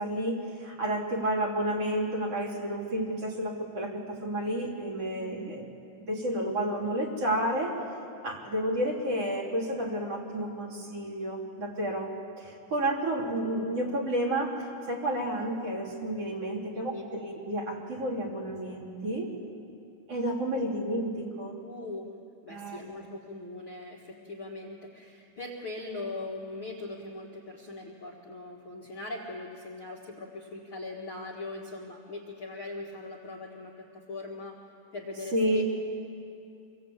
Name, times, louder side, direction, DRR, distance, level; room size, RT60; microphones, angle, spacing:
voice 1, 0.0-5.6 6.0-7.7 8.2-12.1 12.4-19.3 20.1-21.6 22.5-23.0 35.3-35.6, right 1 dB, 40° right, 1 dB, 4.0 m, -31 dB
voice 2, 5.2-5.5 16.7-17.1 21.6-22.1 22.4-34.6 34.9-35.6, left 2 dB, 40° left, -3 dB, 2.0 m, -40 dB
26.5 x 22.5 x 8.5 m, 2.6 s
omnidirectional pair, 4.8 m